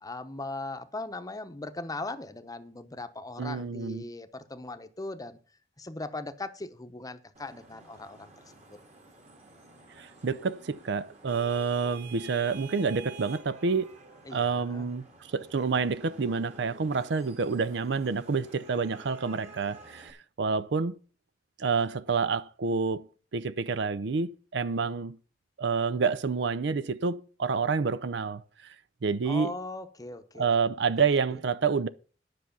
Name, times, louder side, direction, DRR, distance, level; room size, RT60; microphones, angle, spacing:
voice 1, 0.0-5.4 5.8-8.3 8.7-8.8 14.2-14.9 29.3-30.7 31.3-31.4, left 2 dB, 20° left, 0.8 m, -39 dB
voice 2, 3.4-4.0 10.0-14.0 14.3-21.0 21.6-25.2 25.6-28.7 29.0-29.5 30.4-31.9, right 5 dB, 70° right, 0.5 m, -28 dB
Vehicle horn car horn honking / Traffic noise roadway noise, 7.3-20.1, right 3 dB, 40° right, 2.0 m, -50 dB
10.5 x 6.1 x 7.0 m
head